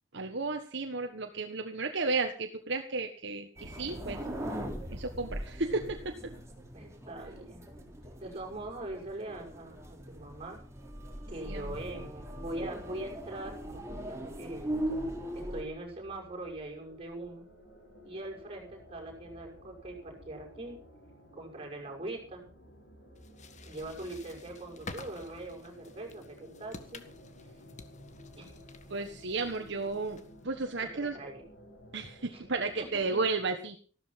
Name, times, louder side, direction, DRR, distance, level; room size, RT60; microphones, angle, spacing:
voice 1, 0.1-4.2 4.9-6.3 11.5-11.8 28.9-31.2 31.9-33.8, right 3 dB, 65° right, 5 dB, 1.5 m, -33 dB
sound 1, 3.6-15.6, right 1 dB, 15° right, 3.9 m, -40 dB
voice 2, 6.7-7.6 8.2-10.6 11.3-14.6 15.5-17.5 18.0-20.8 21.3-22.5 23.4-27.0 28.4-28.6 30.9-31.4 32.3-32.4 32.8-33.2, right 2 dB, 30° right, 1 dB, 6.0 m, -42 dB
sound 2, 15.3-33.1, equal, 65° left, 7.7 m, -54 dB
sound 3, 23.1-30.5, left 3 dB, 40° left, 1.7 m, -50 dB
15.0 x 13.0 x 5.9 m, 0.42 s
head